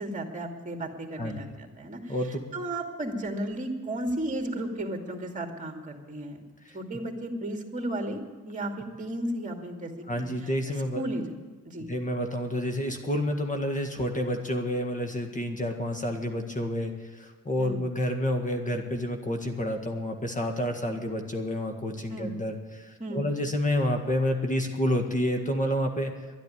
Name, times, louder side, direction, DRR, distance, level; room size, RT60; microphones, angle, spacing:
voice 1, 0.0-6.4 6.7-8.2 8.4-10.5 10.9-11.2 11.6-11.9 17.6-17.8 22.1-22.3 23.0-23.2, right 1 dB, 25° right, 3 dB, 2.5 m, -34 dB
voice 2, 2.1-2.4 6.7-6.8 10.1-11.0 11.9-26.1, left 1 dB, 25° left, 4 dB, 1.8 m, -29 dB
11.5 x 10.5 x 9.9 m, 1.3 s
cardioid pair, 90°, 30 cm